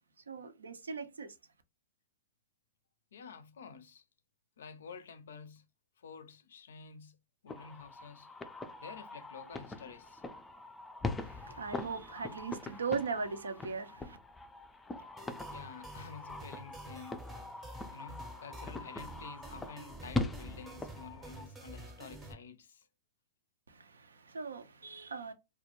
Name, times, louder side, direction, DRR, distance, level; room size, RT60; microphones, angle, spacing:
voice 1, 0.3-1.4 11.2-14.2 23.7-25.3, right 5 dB, 85° right, 0.4 m, -39 dB
voice 2, 3.1-4.0 4.6-5.7 6.0-7.2 7.4-8.3 8.8-10.2 15.5-17.3 17.6-22.9, left 6 dB, 75° left, 0.4 m, -50 dB
sound 1, 7.5-21.5, left 2 dB, 10° left, 0.3 m, -42 dB
sound 2, 15.2-22.3, right 2 dB, 20° right, 0.6 m, -50 dB
2.2 x 2.1 x 2.9 m
hypercardioid pair, 115°, 0 cm